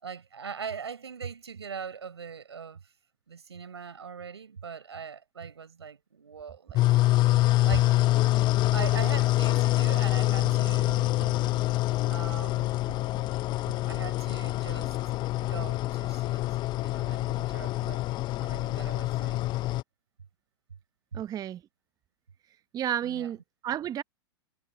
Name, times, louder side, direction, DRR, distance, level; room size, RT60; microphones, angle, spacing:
voice 1, 0.0-2.8 3.3-6.8 7.6-8.0 8.7-11.6 12.1-13.3 13.9-14.9 15.4-16.4 16.8-18.0 18.4-19.5 21.1-21.2 23.0-23.3, right 6 dB, 85° right, 4.8 m, -41 dB
sound 1, 6.7-19.8, left 17 dB, 35° left, 0.5 m, -26 dB
voice 2, 21.1-21.6 22.7-24.0, right 10 dB, 30° right, 0.9 m, -32 dB
hypercardioid pair, 95°, 14 cm